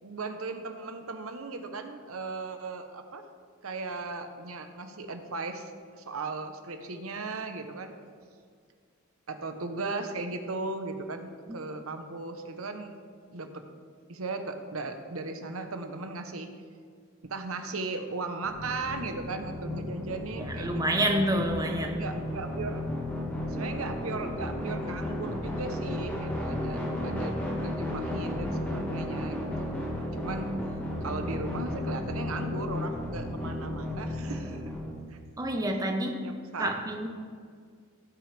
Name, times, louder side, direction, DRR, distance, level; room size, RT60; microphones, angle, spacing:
voice 1, 0.0-3.2 3.6-5.7 6.0-7.9 9.3-13.0 13.3-13.6 14.1-16.5 17.2-21.1 21.9-22.8 23.5-29.7 30.2-30.5 31.0-34.6 35.1-35.2 36.2-36.7, right 3 dB, 75° right, 6 dB, 1.0 m, -37 dB
sound 1, 18.4-34.9, left 1 dB, 10° left, 1.7 m, -34 dB
voice 2, 20.4-22.1 35.4-36.2 36.6-37.1, right 1 dB, 15° right, 3 dB, 0.9 m, -28 dB
17.0 x 6.1 x 3.4 m, 2.1 s
head